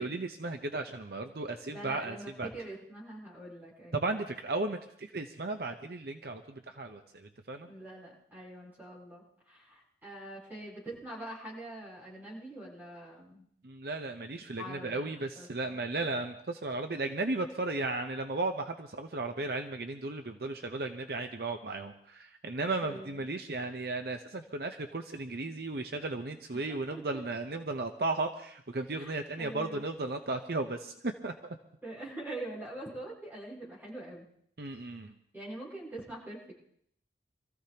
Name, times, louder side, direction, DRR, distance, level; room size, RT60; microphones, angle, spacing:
voice 1, 0.0-2.5 3.9-7.7 13.6-31.3 34.6-35.1, right 2 dB, 60° right, 6 dB, 0.8 m, -35 dB
voice 2, 1.7-4.2 7.6-13.5 14.6-15.8 22.8-23.3 26.5-27.2 29.0-29.8 31.8-34.3 35.3-36.6, right 1 dB, 10° right, -6 dB, 7.8 m, -44 dB
26.0 x 14.5 x 2.9 m, 0.67 s
head